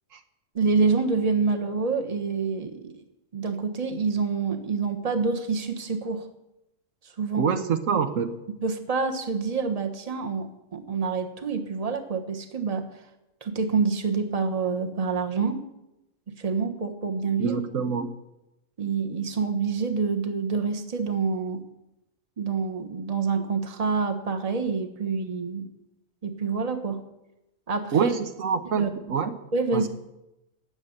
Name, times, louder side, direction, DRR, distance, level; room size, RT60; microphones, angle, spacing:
voice 1, 0.5-3.0 3.3-6.3 7.2-7.5 8.6-12.8 13.4-15.6 16.4-17.6 18.8-21.6 22.4-25.7 26.2-27.0 27.7-28.1 28.8-28.9 29.5-29.9, right 4 dB, 30° right, 6 dB, 1.3 m, -27 dB
voice 2, 7.4-8.4 17.4-18.2 27.9-29.4 29.7-29.9, right 6 dB, 70° right, 8 dB, 1.2 m, -26 dB
18.5 x 7.1 x 8.0 m, 0.92 s
omnidirectional pair, 1.4 m